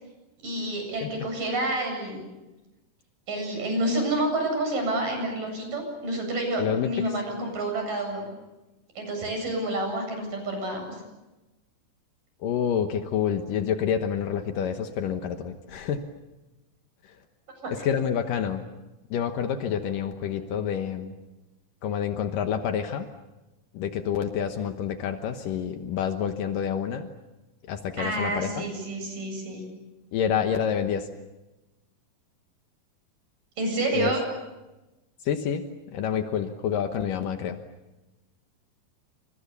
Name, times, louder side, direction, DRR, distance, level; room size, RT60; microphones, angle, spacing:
voice 1, 0.4-2.2 3.3-8.3 9.0-11.0 17.6-17.7 28.0-29.6 33.6-34.2, right 1 dB, 70° right, 4 dB, 9.7 m, -29 dB
voice 2, 6.6-6.9 12.4-16.1 17.7-18.6 19.1-21.1 21.8-23.1 23.7-27.1 27.7-28.7 30.1-31.1 33.9-34.1 35.2-35.6 35.9-37.6, left 8 dB, 75° left, 6 dB, 2.8 m, -28 dB
29.0 x 27.5 x 6.9 m, 1.0 s
omnidirectional pair, 3.9 m